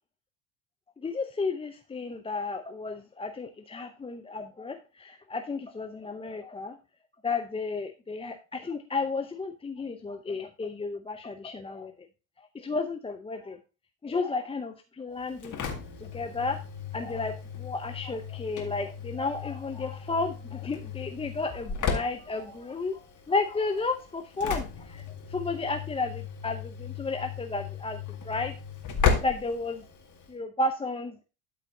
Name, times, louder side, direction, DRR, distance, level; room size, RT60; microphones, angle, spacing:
voice 1, 1.0-6.8 7.2-12.1 12.5-13.6 14.0-15.5 16.0-16.6 16.9-25.0 25.3-28.0 28.2-28.5 29.2-29.9 30.3-31.2, left 3 dB, 10° left, 6 dB, 0.6 m, -33 dB
Engine / Slam, 15.2-30.3, left 6 dB, 40° left, 2.1 m, -35 dB
12.5 x 4.2 x 3.9 m, 0.32 s
hypercardioid pair, 70°, 45 cm